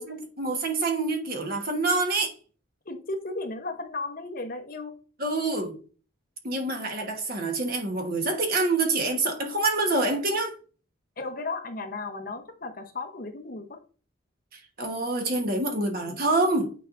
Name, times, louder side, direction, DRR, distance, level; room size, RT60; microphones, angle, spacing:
voice 1, 0.0-2.3 5.2-5.8 6.4-10.5 14.5-16.7, right 2 dB, 45° right, 1.2 m, -26 dB
voice 2, 2.9-5.0 11.2-13.8, left 3 dB, 45° left, 0.9 m, -35 dB
8.9 x 4.6 x 2.5 m
head